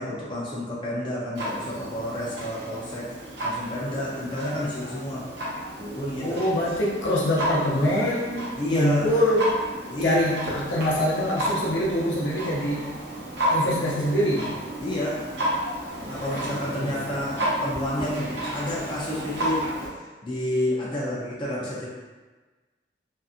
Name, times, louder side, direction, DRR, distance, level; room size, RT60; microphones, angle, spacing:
voice 1, 0.0-3.1 3.4-5.2 5.8-6.4 8.6-9.1 9.9-10.2 14.8-15.2 16.0-19.7 20.0-21.9, left 1 dB, 25° left, -6 dB, 0.5 m, -30 dB
Clock, 1.3-19.9, right 1 dB, 80° right, 0.7 m, -32 dB
voice 2, 6.2-8.4 8.7-9.4 10.0-12.9 13.5-14.5 16.0-17.1 19.0-19.1, equal, 90° left, -5 dB, 0.7 m, -25 dB
2.6 x 2.4 x 2.4 m, 1.3 s
head